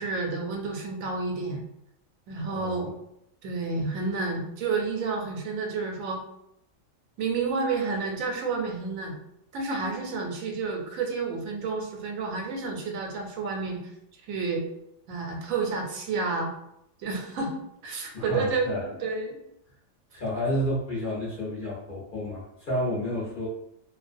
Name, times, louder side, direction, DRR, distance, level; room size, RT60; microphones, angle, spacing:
voice 1, 0.0-1.6 2.3-2.9 3.4-6.2 7.2-9.1 9.5-13.8 14.3-14.6 15.1-16.5 17.0-17.5 17.8-19.4, right 4 dB, 85° right, 2 dB, 1.0 m, -30 dB
voice 2, 2.3-2.9 18.1-18.8 20.1-23.5, left 1 dB, 50° left, -6 dB, 0.7 m, -31 dB
2.4 x 2.1 x 2.5 m, 0.79 s
omnidirectional pair, 1.4 m